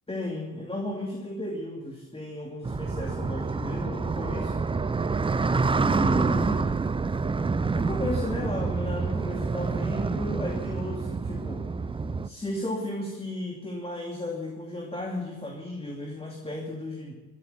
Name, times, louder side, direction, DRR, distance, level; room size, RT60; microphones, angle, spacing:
voice 1, 0.1-4.5 5.6-6.8 7.7-11.6 12.2-17.1, left 1 dB, 10° left, 0 dB, 2.6 m, -34 dB
sound 1, 2.6-12.3, right 4 dB, 10° right, 0.6 m, -27 dB
13.5 x 10.0 x 9.5 m, 1.3 s
hypercardioid pair, 60°, 48 cm